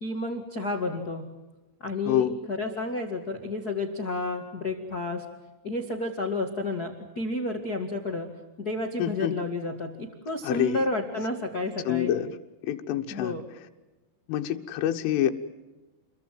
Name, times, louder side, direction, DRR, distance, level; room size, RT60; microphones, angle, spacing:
voice 1, 0.0-1.3 1.8-5.2 5.6-8.3 8.6-12.1 13.1-13.4, left 2 dB, 55° left, 4 dB, 1.0 m, -31 dB
voice 2, 2.1-2.4 9.0-9.3 10.4-10.8 11.9-12.3 12.6-13.4 14.3-15.3, left 11 dB, 90° left, 5 dB, 3.7 m, -26 dB
29.0 x 22.5 x 7.7 m, 1.1 s
omnidirectional pair, 5.5 m